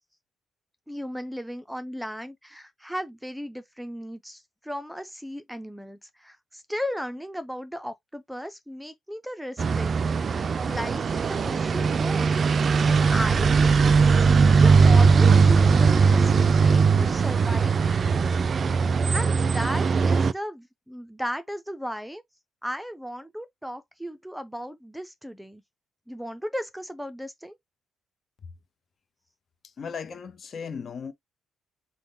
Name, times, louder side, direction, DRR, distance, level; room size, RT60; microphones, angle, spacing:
voice 1, 0.9-12.4 12.6-18.2 19.1-22.2 22.6-25.6 26.1-27.6, equal, ahead, 0.6 m, -36 dB
sound 1, 9.6-20.3, right 5 dB, 45° right, 0.3 m, -20 dB
voice 2, 29.6-31.1, left 6 dB, 50° left, 0.8 m, -36 dB
3.5 x 2.2 x 4.0 m
cardioid pair, 90°, 0 cm